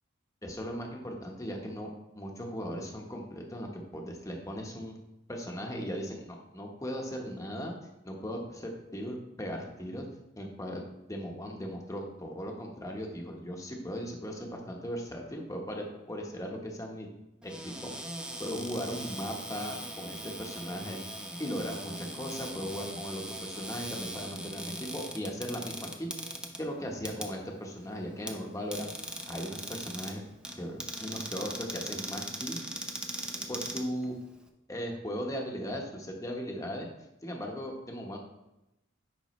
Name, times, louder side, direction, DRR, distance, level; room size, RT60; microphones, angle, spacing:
voice 1, 0.4-1.9 2.1-5.0 5.3-7.7 8.0-10.0 10.4-17.1 17.4-17.9 18.4-21.0 21.4-26.1 26.6-28.9 29.3-30.2 30.5-32.6 33.5-34.2 34.7-36.9 37.2-38.2, equal, 15° left, 0 dB, 1.0 m, -38 dB
Cupboard open or close, 17.4-34.5, right 1 dB, 5° right, 0.5 m, -40 dB
9.2 x 5.4 x 3.1 m, 0.91 s
head